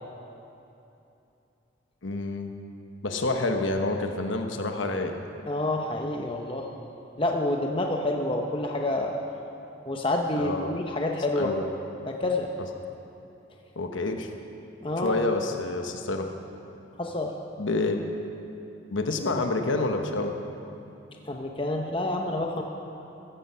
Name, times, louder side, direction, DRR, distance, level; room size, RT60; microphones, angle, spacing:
voice 1, 2.0-2.5 3.0-5.2 10.4-10.7 11.4-11.7 13.8-14.3 15.0-16.3 17.6-18.1 18.9-20.3, left 2 dB, 80° left, 5 dB, 1.1 m, -28 dB
voice 2, 5.5-6.7 7.2-9.1 9.9-11.5 12.1-12.5 14.8-15.2 17.0-17.3 21.3-22.6, left 2 dB, 25° left, 1 dB, 0.8 m, -28 dB
14.5 x 14.0 x 5.6 m, 2.9 s
head